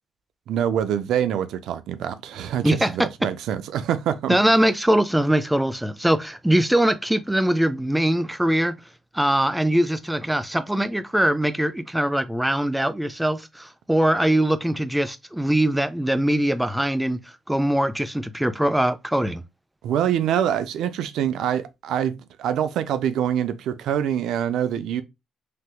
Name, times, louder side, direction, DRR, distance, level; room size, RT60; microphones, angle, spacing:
voice 1, 0.5-4.4 19.8-22.1 22.4-25.0, right 9 dB, 80° right, 0.4 m, -25 dB
voice 2, 2.6-3.1 4.3-8.8 9.1-19.4, right 1 dB, 5° right, 0.4 m, -22 dB
3.3 x 2.9 x 2.3 m
cardioid pair, 90°, 0 cm